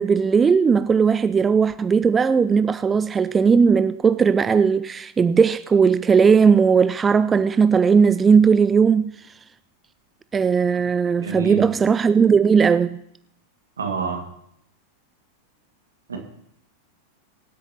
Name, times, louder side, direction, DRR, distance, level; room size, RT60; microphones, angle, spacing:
voice 1, 0.0-9.1 10.3-13.0, right 6 dB, 20° right, 0.3 m, -17 dB
voice 2, 11.2-11.6 13.8-14.2 16.1-16.2, right 5 dB, 70° right, 1.9 m, -27 dB
24.5 x 8.4 x 2.9 m
figure-of-eight pair, 90°, 0 cm